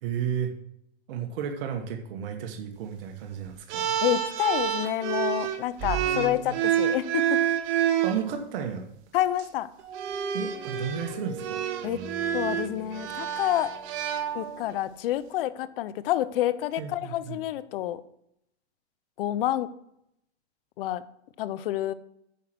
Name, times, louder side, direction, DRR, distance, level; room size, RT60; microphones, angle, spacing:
voice 1, 0.0-0.5 1.1-4.0 5.9-6.6 8.0-8.8 10.3-11.6 16.8-17.4, right 7 dB, 55° right, 4 dB, 1.4 m, -33 dB
sound 1, 3.7-8.2 9.2-9.4 9.9-14.8, right 9 dB, 35° right, 1.1 m, -28 dB
voice 2, 4.0-7.4 9.1-9.7 11.8-12.0 12.3-13.7 14.3-18.0 19.2-19.7 20.8-21.0 21.4-21.9, left 13 dB, 55° left, 16 dB, 0.8 m, -28 dB
sound 2, 9.8-15.0, right 5 dB, 80° right, 1.8 m, -43 dB
9.5 x 5.7 x 6.2 m, 0.76 s
hypercardioid pair, 140°, 34 cm